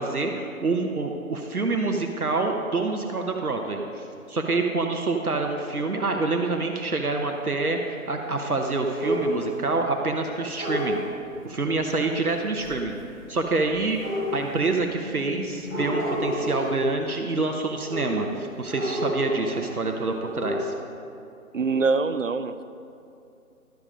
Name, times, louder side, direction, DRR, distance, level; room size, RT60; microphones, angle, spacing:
voice 1, 0.0-11.0 11.4-13.0 13.3-14.0 14.3-20.7, right 3 dB, 75° right, 3 dB, 1.1 m, -27 dB
sound 1, 9.0-9.5 10.5-11.0 13.9-14.7 15.6-16.8 17.8-18.3 18.6-19.8 20.1-20.6, equal, ahead, 2.4 m, -29 dB
sound 2, 11.0-17.4, left 3 dB, 25° left, 1.0 m, -44 dB
voice 2, 21.5-22.6, right 4 dB, 60° right, 12 dB, 0.5 m, -24 dB
12.0 x 7.3 x 5.2 m, 2.6 s
figure-of-eight pair, 155°, 44 cm